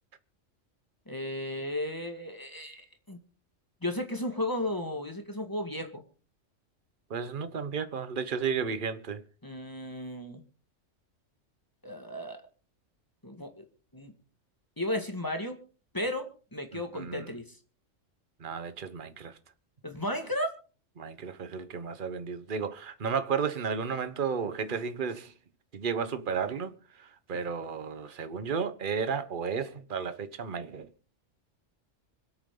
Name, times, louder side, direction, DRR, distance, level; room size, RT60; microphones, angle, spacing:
voice 1, 1.1-3.2 3.8-6.0 9.4-10.4 11.8-12.4 13.2-13.7 13.9-14.1 14.8-15.6 15.9-17.6 19.8-20.5, left 1 dB, 15° left, 2.0 m, -34 dB
voice 2, 7.1-9.2 16.7-17.3 18.4-19.4 21.0-25.3 25.7-30.9, right 6 dB, 45° right, 1.2 m, -33 dB
25.5 x 8.7 x 3.9 m
omnidirectional pair, 1.3 m